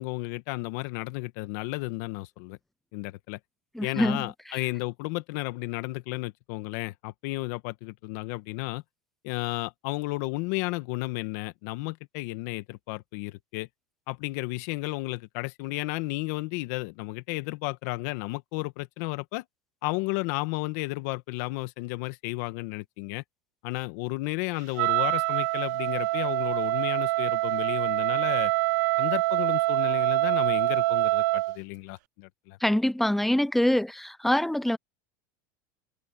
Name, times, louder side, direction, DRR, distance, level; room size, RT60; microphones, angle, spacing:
voice 1, 0.0-2.6 2.9-3.4 3.8-8.8 9.2-13.7 14.1-19.4 19.8-23.2 23.6-28.5 29.0-32.6, left 22 dB, 65° left, 1.6 m, -33 dB
voice 2, 3.7-4.6 32.6-34.8, left 1 dB, ahead, 0.7 m, -25 dB
Wind instrument woodwind instrument, 24.8-31.6, right 20 dB, 75° right, 0.4 m, -25 dB
supercardioid pair, 135°, 10 cm